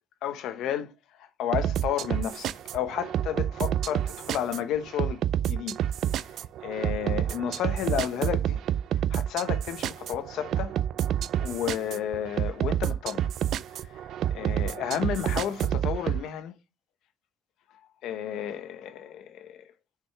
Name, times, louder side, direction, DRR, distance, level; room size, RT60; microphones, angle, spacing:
voice 1, 0.2-5.8 6.2-8.6 8.9-10.8 11.4-13.3 13.7-16.5 17.7-19.7, left 10 dB, 90° left, 0.9 m, -32 dB
sound 1, 1.5-16.2, right 11 dB, 75° right, 0.4 m, -29 dB
6.5 x 5.1 x 5.8 m
cardioid pair, 105°, 0 cm